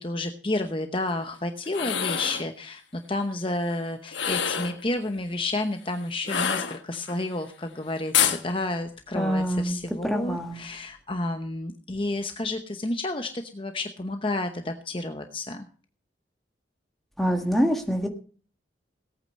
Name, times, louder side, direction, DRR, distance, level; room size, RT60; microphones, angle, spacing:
voice 1, 0.0-15.7, left 2 dB, 30° left, 6 dB, 0.9 m, -31 dB
sound 1, 1.6-2.5 4.1-4.8 6.2-7.1 8.1-8.4, left 8 dB, 75° left, 1.4 m, -26 dB
voice 2, 9.1-9.8 10.0-10.6 17.2-18.1, equal, ahead, 3 dB, 1.6 m, -25 dB
17.5 x 8.9 x 5.3 m, 0.42 s
head